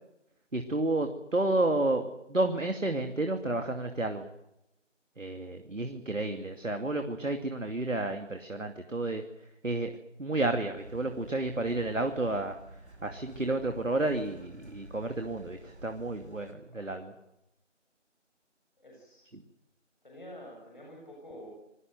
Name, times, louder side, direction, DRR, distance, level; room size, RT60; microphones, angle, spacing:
voice 1, 0.5-4.3 5.2-9.2 9.6-9.9 10.2-12.6 13.0-17.1 19.3-19.4, right 2 dB, 90° right, 6 dB, 2.7 m, -31 dB
sound 1, 10.8-16.5, right 1 dB, 60° right, 4.3 m, -51 dB
voice 2, 16.7-17.1 18.8-19.2 20.0-21.5, equal, 40° left, -1 dB, 7.3 m, -48 dB
27.5 x 20.5 x 7.8 m, 0.87 s
figure-of-eight pair, 175°, 37 cm